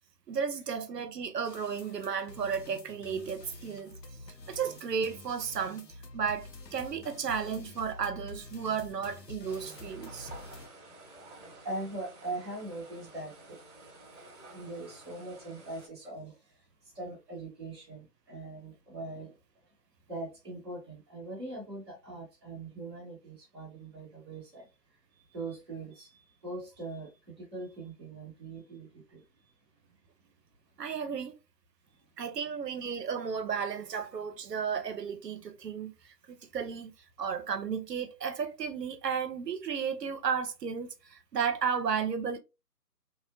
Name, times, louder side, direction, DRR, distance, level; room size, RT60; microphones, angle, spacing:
voice 1, 0.3-4.0 4.5-10.3 30.8-31.4 32.2-36.9 37.2-42.4, right 6 dB, 80° right, 0.6 m, -33 dB
sound 1, 1.4-10.7, left 2 dB, 85° left, 0.8 m, -48 dB
sound 2, 9.4-15.9, right 2 dB, 45° right, 1.0 m, -51 dB
voice 2, 11.3-13.6 14.5-16.4 16.9-19.3 20.1-24.7 25.2-29.2, right 2 dB, 15° right, 0.7 m, -41 dB
2.5 x 2.0 x 2.5 m
figure-of-eight pair, 150°, 48 cm